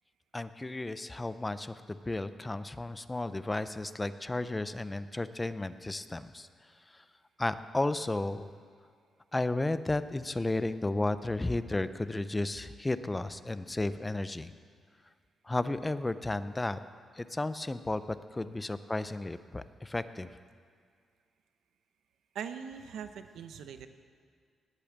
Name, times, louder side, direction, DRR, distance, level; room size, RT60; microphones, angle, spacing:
voice 1, 0.3-6.5 6.9-7.0 7.4-8.5 9.3-14.5 15.4-16.8 17.2-18.0 18.3-20.3, left 2 dB, 15° left, 13 dB, 0.5 m, -33 dB
voice 2, 22.3-23.9, right 7 dB, 85° right, 9 dB, 0.9 m, -41 dB
19.0 x 8.6 x 7.4 m, 2.1 s
cardioid pair, 140°, 0 cm